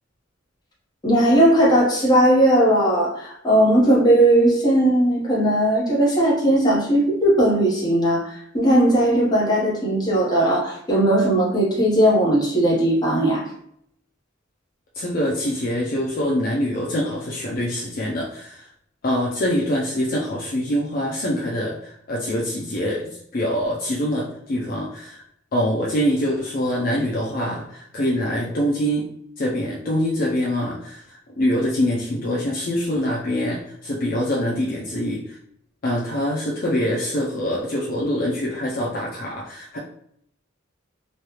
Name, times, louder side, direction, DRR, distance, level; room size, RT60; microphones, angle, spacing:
voice 1, 1.0-13.4, right 1 dB, 20° left, -6 dB, 1.0 m, -18 dB
voice 2, 14.9-18.7 19.0-25.2 25.5-29.0 29.4-35.4 35.8-39.8, equal, 45° left, -4 dB, 0.5 m, -24 dB
3.2 x 2.3 x 2.9 m, 0.72 s
head